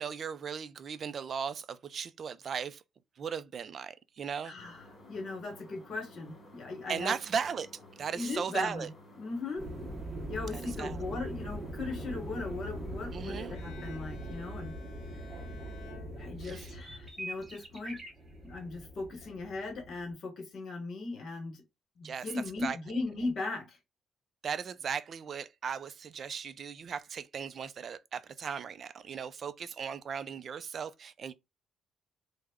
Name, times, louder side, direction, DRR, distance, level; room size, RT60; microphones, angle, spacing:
voice 1, 0.0-2.8 3.2-4.5 6.9-7.7 8.0-8.9 10.5-11.0 13.1-13.5 16.4-16.7 22.0-22.3 22.6-22.8 24.4-31.3, right 6 dB, 40° right, 0.3 m, -37 dB
voice 2, 4.4-7.1 8.1-8.9 9.2-9.7 10.3-14.7 16.2-18.0 18.4-21.6 22.0-23.8, left 3 dB, 50° left, 1.1 m, -38 dB
sound 1, 4.6-13.6, left 1 dB, 30° left, 1.1 m, -55 dB
sound 2, 9.6-20.1, right 1 dB, 15° right, 0.7 m, -42 dB
Bowed string instrument, 13.5-16.9, left 7 dB, 80° left, 0.6 m, -54 dB
3.4 x 2.0 x 3.5 m
cardioid pair, 160°, 0 cm